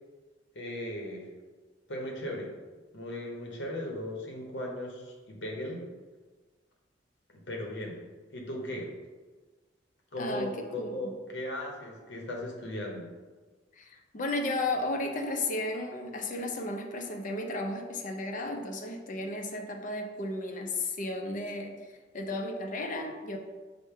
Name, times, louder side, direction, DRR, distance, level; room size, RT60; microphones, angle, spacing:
voice 1, 0.5-1.3 1.9-2.5 2.9-5.8 7.3-8.0 8.3-8.9 10.1-13.1, left 1 dB, 70° left, 0 dB, 0.8 m, -37 dB
voice 2, 10.2-11.1 13.7-23.4, left 2 dB, 45° left, 3 dB, 0.5 m, -34 dB
5.0 x 2.1 x 4.5 m, 1.3 s
head